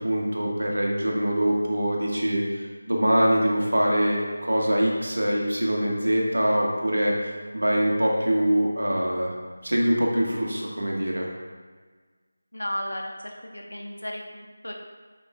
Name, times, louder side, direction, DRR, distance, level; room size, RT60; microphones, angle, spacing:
voice 1, 0.0-9.3 9.6-11.3, equal, 85° right, -2 dB, 1.5 m, -24 dB
voice 2, 12.5-14.7, equal, 85° left, 1 dB, 1.1 m, -34 dB
8.8 x 5.2 x 2.4 m, 1.5 s
figure-of-eight pair, 165°, 0 cm